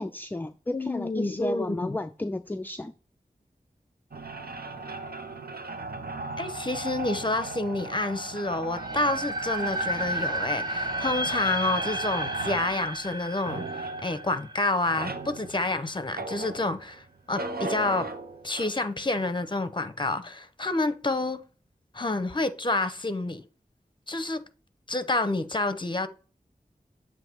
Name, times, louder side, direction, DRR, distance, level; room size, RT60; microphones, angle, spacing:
voice 1, 0.0-2.9, left 2 dB, 10° left, 0.3 m, -33 dB
voice 2, 0.7-2.0 6.4-13.7 14.0-18.1 18.4-21.4 21.9-23.4 24.1-24.4 24.9-26.1, left 2 dB, 30° left, 0.7 m, -28 dB
sound 1, 4.1-17.0 17.4-18.7, right 2 dB, 75° right, 0.7 m, -37 dB
sound 2, 8.7-15.6, right 1 dB, 25° right, 1.0 m, -33 dB
7.6 x 2.6 x 5.2 m
wide cardioid pair, 50°, 16 cm